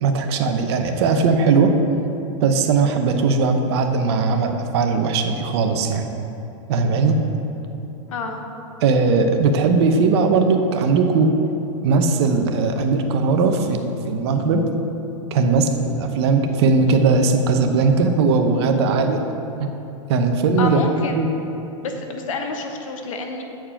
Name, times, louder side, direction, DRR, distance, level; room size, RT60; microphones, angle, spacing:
voice 1, 0.0-1.7 2.4-6.1 6.7-7.2 8.8-11.4 11.8-13.8 14.1-14.6 15.3-19.2 19.6-19.7 20.1-20.8 21.1-21.3, right 4 dB, 55° right, 5 dB, 0.8 m, -18 dB
voice 2, 8.1-8.4 20.6-21.2 21.8-23.4, left 3 dB, 80° left, 4 dB, 1.1 m, -28 dB
8.9 x 4.6 x 5.8 m, 3.0 s
supercardioid pair, 150°, 17 cm